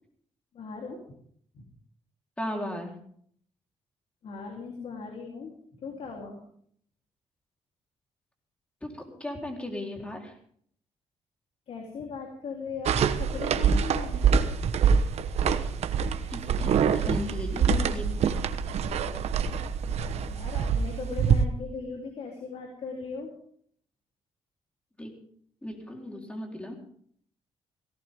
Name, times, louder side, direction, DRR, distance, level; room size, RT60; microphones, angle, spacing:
voice 1, 0.5-1.0 1.5-1.6 4.2-5.5 5.8-6.4 11.7-14.6 20.3-23.3, left 4 dB, 65° left, 0 dB, 3.7 m, -38 dB
voice 2, 2.4-2.9 8.8-10.3 16.3-18.5 25.0-25.1 25.6-26.8, left 1 dB, 10° left, 1 dB, 4.1 m, -36 dB
sound 1, 12.9-21.4, right 6 dB, 70° right, 1.2 m, -25 dB
18.0 x 17.5 x 3.8 m, 0.62 s
cardioid pair, 110°, 11 cm